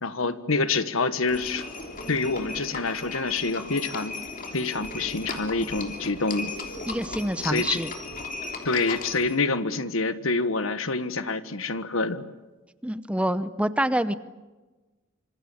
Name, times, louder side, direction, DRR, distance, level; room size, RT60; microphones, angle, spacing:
voice 1, 0.0-1.6 2.1-4.1 4.5-6.5 7.4-7.8 8.6-12.2, left 3 dB, 80° left, 12 dB, 1.5 m, -27 dB
Livestock farm animals working animals, 1.3-9.4, left 3 dB, 40° left, 3.3 m, -36 dB
voice 2, 6.9-7.9 12.8-14.1, right 1 dB, 5° right, 13 dB, 0.8 m, -26 dB
27.0 x 26.0 x 7.2 m, 1.2 s
head